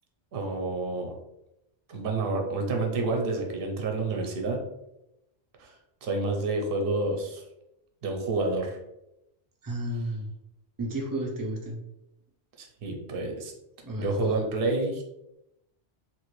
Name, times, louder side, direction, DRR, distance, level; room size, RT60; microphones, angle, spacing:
voice 1, 0.3-1.1 1.9-4.6 5.6-7.4 8.0-8.8 12.6-13.5 14.0-15.0, right 2 dB, 55° right, 2 dB, 0.8 m, -29 dB
voice 2, 9.6-10.3 10.8-11.8 13.8-14.4, right 1 dB, 30° right, 0 dB, 0.3 m, -32 dB
3.0 x 2.4 x 3.1 m, 0.87 s
omnidirectional pair, 1.2 m